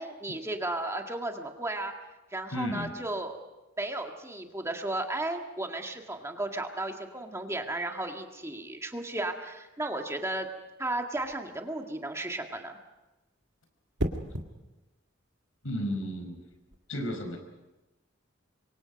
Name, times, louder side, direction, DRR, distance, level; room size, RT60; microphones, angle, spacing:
voice 1, 0.0-1.9 2.3-3.4 3.8-10.5 10.8-12.8, right 2 dB, 15° right, 3 dB, 1.8 m, -34 dB
voice 2, 2.5-3.0 15.6-16.4 16.9-17.4, equal, 90° left, 5 dB, 5.3 m, -33 dB
sound 1, 11.2-11.5 14.0-14.5 16.5-16.8, right 1 dB, 60° right, 2.0 m, -33 dB
27.0 x 24.0 x 5.3 m, 1.1 s
head